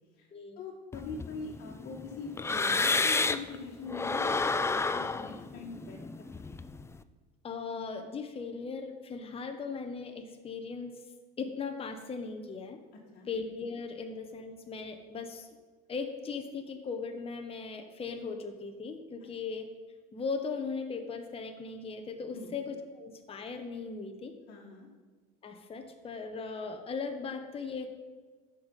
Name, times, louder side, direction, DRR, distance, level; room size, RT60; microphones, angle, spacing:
voice 1, 0.1-4.4 4.7-6.5 12.9-13.3 19.2-19.3 22.3-22.5 24.5-24.9, left 4 dB, 50° left, -4 dB, 1.9 m, -43 dB
sound 1, 0.9-3.6 3.9-7.0, left 3 dB, 15° left, 0.5 m, -31 dB
voice 2, 7.4-10.9 11.4-12.8 13.3-15.5 15.9-19.7 20.1-24.4 25.4-27.9, left 4 dB, 30° left, 5 dB, 1.1 m, -38 dB
14.0 x 5.4 x 5.6 m, 1.4 s
supercardioid pair, 85°, 21 cm